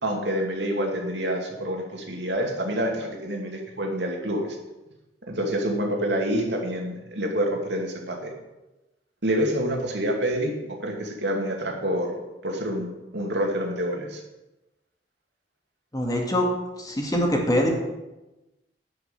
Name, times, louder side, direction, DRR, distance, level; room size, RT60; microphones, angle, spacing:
voice 1, 0.0-4.6 5.3-8.3 9.2-14.2, equal, 85° right, 1 dB, 2.5 m, -27 dB
voice 2, 15.9-16.5 16.8-17.7, left 1 dB, 20° left, 0 dB, 2.1 m, -23 dB
11.0 x 5.8 x 8.8 m, 1.0 s
head